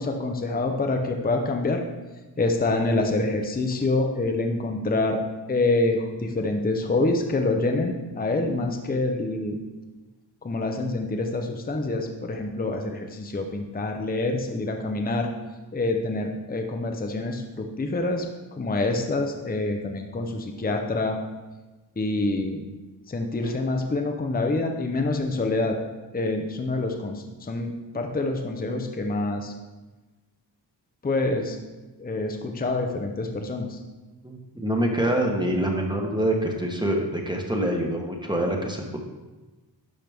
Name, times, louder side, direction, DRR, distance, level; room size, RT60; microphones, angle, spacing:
voice 1, 0.0-1.8 2.4-5.2 5.5-9.6 10.4-15.3 15.7-18.3 18.5-21.2 22.0-22.6 23.1-25.8 26.1-29.5 31.0-31.6 32.0-33.8, left 2 dB, 20° left, 3 dB, 0.8 m, -26 dB
voice 2, 34.2-39.0, right 1 dB, 10° right, 0 dB, 1.2 m, -25 dB
12.0 x 4.9 x 3.6 m, 1.2 s
wide cardioid pair, 95°, 44 cm